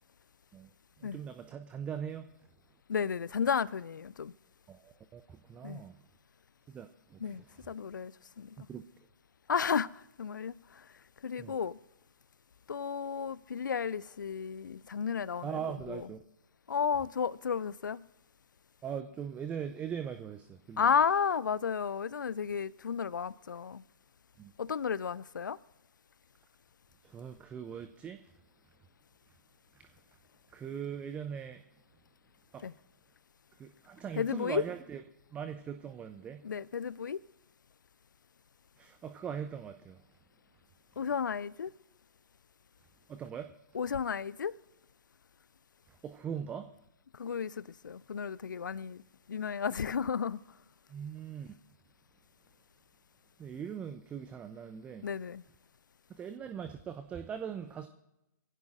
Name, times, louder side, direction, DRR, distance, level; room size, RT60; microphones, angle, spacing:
voice 1, 1.0-2.3 4.7-6.0 6.7-7.4 8.6-8.8 11.4-11.5 15.4-16.2 18.8-20.9 24.4-24.5 27.0-28.2 29.7-29.9 30.5-31.6 32.5-32.6 33.6-35.0 35.3-36.4 38.8-40.0 43.1-43.5 46.0-46.7 50.9-51.5 53.4-55.1 56.1-57.9, right 8 dB, 10° right, 0.5 m, -40 dB
voice 2, 2.9-4.3 5.6-5.8 7.2-8.6 9.5-10.9 11.2-11.8 12.7-15.6 15.9-16.1 16.7-18.0 20.8-23.8 24.6-25.6 32.6-32.7 34.1-34.6 36.4-37.2 41.0-41.7 43.7-44.6 47.1-49.0 49.3-50.4 55.0-55.4, left 6 dB, 70° left, 0.5 m, -33 dB
24.0 x 15.5 x 2.5 m
figure-of-eight pair, 130°, 11 cm